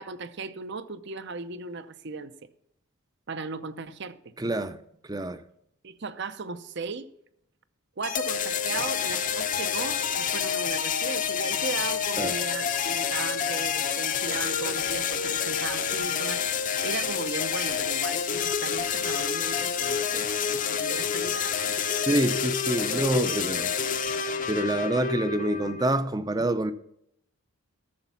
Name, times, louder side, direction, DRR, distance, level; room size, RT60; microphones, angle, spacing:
voice 1, 0.0-2.3 3.3-4.3 5.8-7.1 8.0-16.5 16.8-21.8 22.9-23.4, right 4 dB, 55° right, 0.7 m, -37 dB
voice 2, 4.4-4.8 5.1-5.4 12.2-12.3 22.1-23.7 24.5-26.7, right 1 dB, 20° right, 0.5 m, -26 dB
sound 1, 8.0-26.0, left 7 dB, 35° left, 0.6 m, -28 dB
13.0 x 7.1 x 5.7 m
head